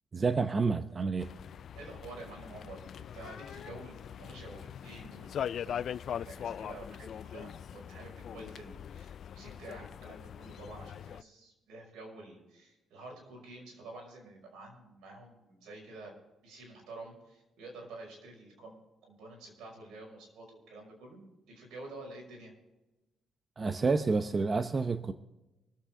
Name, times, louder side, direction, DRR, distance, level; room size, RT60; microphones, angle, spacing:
voice 1, 0.1-1.3 23.6-25.1, right 4 dB, 35° right, 0.7 m, -29 dB
sound 1, 1.2-11.2, left 9 dB, 60° left, 0.3 m, -41 dB
voice 2, 1.7-5.8 6.0-16.1 16.4-21.2 21.5-22.5, right 2 dB, 85° right, 5.7 m, -49 dB
24.5 x 8.1 x 3.7 m
cardioid pair, 90°, 0 cm